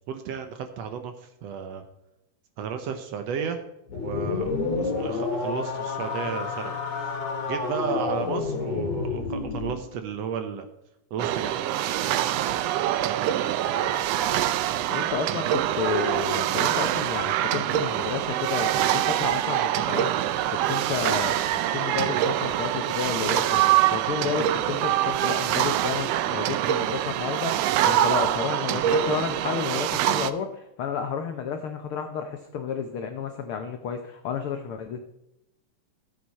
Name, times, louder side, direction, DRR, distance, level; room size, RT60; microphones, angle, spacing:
voice 1, 0.1-1.8 2.6-3.6 4.0-7.1 7.5-10.7 11.1-11.6 14.7-15.0, right 7 dB, 70° right, 8 dB, 1.7 m, -33 dB
sound 1, 3.9-9.8, left 4 dB, 55° left, 3.1 m, -29 dB
sound 2, 11.2-30.3, right 12 dB, 85° right, 1.4 m, -25 dB
voice 2, 13.6-14.4 14.9-35.0, left 7 dB, 80° left, 6 dB, 1.2 m, -32 dB
14.0 x 8.0 x 4.2 m, 0.88 s
omnidirectional pair, 3.6 m